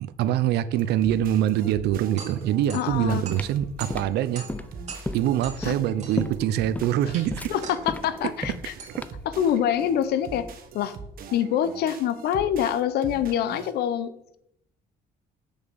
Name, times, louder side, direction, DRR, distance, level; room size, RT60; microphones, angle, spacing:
voice 1, 0.0-4.5 5.1-7.5 9.0-9.1, right 11 dB, 75° right, 0.7 m, -24 dB
sound 1, 0.8-13.7, right 5 dB, 60° right, 1.4 m, -43 dB
sound 2, 1.8-10.8, right 5 dB, 40° right, 2.7 m, -45 dB
voice 2, 2.7-3.3 5.6-5.8 7.0-7.1 7.5-8.7 9.2-10.9 11.3-14.4, left 9 dB, 75° left, 1.0 m, -26 dB
sound 3, 2.9-9.4, left 2 dB, 10° left, 0.5 m, -34 dB
7.2 x 6.8 x 7.1 m
cardioid pair, 110°, 17 cm